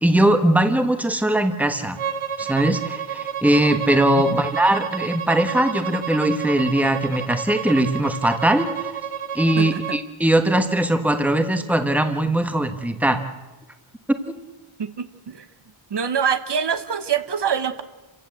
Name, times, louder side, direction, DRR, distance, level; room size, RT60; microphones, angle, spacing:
voice 1, 0.0-2.0 2.4-9.0 9.3-13.2 14.1-14.4, right 1 dB, 5° right, 7 dB, 1.3 m, -20 dB
Bowed string instrument, 2.0-10.0, right 8 dB, 85° right, 1.3 m, -30 dB
voice 2, 14.8-15.4 15.9-17.8, right 7 dB, 55° right, 10 dB, 1.1 m, -24 dB
28.5 x 15.5 x 7.8 m, 1.2 s
wide cardioid pair, 175°, 49 cm